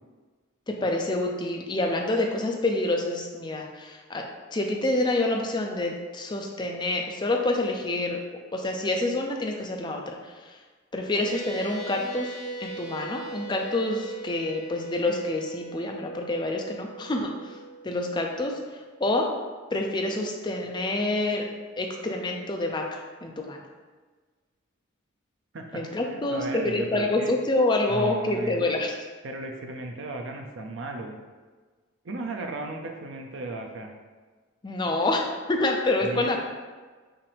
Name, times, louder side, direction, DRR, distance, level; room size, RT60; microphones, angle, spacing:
voice 1, 0.7-4.2 4.5-8.2 8.5-10.2 10.9-12.3 12.6-17.6 17.8-18.6 19.0-19.3 19.7-21.5 21.8-23.6 25.7-28.9 34.6-36.4, left 2 dB, 20° left, 1 dB, 0.4 m, -27 dB
sound 1, 11.2-19.9, right 3 dB, 20° right, 0.7 m, -41 dB
voice 2, 25.5-27.3 27.9-28.7 29.2-31.2 32.0-33.9 36.0-36.4, right 2 dB, 60° right, 3 dB, 0.5 m, -35 dB
5.6 x 2.6 x 3.3 m, 1.4 s
head